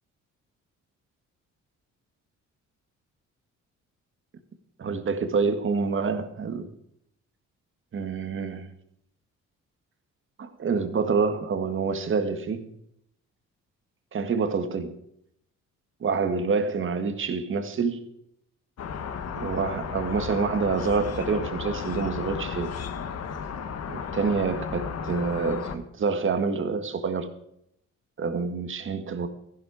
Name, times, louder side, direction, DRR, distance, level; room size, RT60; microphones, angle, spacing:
voice 1, 4.8-6.7 7.9-8.7 10.4-12.7 14.1-15.0 16.0-18.0 19.4-22.7 23.9-27.3 28.2-29.3, right 5 dB, 45° right, 8 dB, 1.8 m, -27 dB
sound 1, 18.8-25.8, left 6 dB, 55° left, 1.5 m, -34 dB
15.0 x 11.5 x 4.9 m, 0.73 s
cardioid pair, 125°, 30 cm